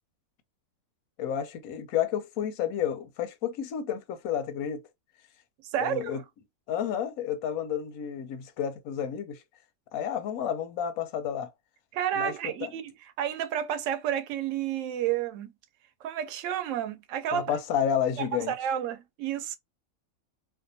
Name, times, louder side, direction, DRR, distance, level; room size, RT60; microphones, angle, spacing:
voice 1, 1.2-4.8 5.8-6.2 6.7-9.4 9.9-11.5 12.2-12.3 12.6-12.7 17.3-18.5, left 9 dB, 90° left, 1.0 m, -30 dB
voice 2, 5.6-6.2 11.9-15.5 16.0-17.5 18.2-19.6, right 10 dB, 70° right, 0.9 m, -31 dB
2.6 x 2.2 x 2.6 m
omnidirectional pair, 1.4 m